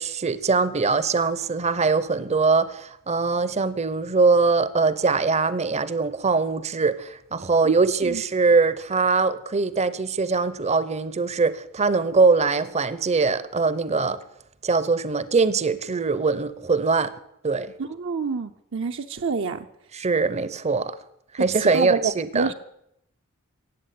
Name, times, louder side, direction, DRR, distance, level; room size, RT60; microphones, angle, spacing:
voice 1, 0.0-14.2 14.6-17.1 17.4-17.7 19.9-20.9 21.3-22.5, right 4 dB, 30° right, 0.7 m, -22 dB
voice 2, 7.6-8.2 17.8-19.7 21.6-22.5, right 4 dB, 60° right, 0.7 m, -27 dB
15.5 x 8.7 x 8.4 m
head